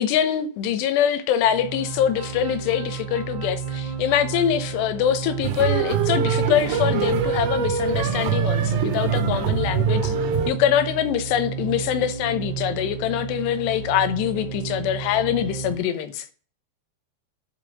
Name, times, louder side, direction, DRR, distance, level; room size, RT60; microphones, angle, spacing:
voice 1, 0.0-10.1 10.5-16.3, left 10 dB, 85° left, 3.1 m, -24 dB
sound 1, 1.4-15.7, right 7 dB, 45° right, 3.9 m, -32 dB
sound 2, 5.4-10.5, right 6 dB, 90° right, 3.4 m, -23 dB
10.5 x 5.3 x 7.5 m
omnidirectional pair, 4.8 m